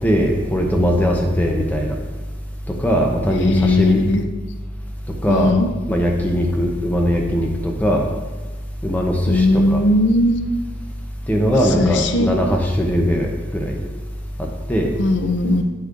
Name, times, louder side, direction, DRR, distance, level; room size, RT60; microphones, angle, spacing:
voice 1, 0.0-2.0 2.7-4.0 5.2-5.5 5.9-8.1 8.8-9.8 11.3-13.8 14.7-14.9, equal, 10° left, 1 dB, 0.7 m, -19 dB
voice 2, 3.3-4.2 5.3-5.7 9.3-10.3 11.6-12.3 15.0-15.6, left 1 dB, 70° left, 7 dB, 0.6 m, -18 dB
8.1 x 8.0 x 2.5 m, 1.3 s
head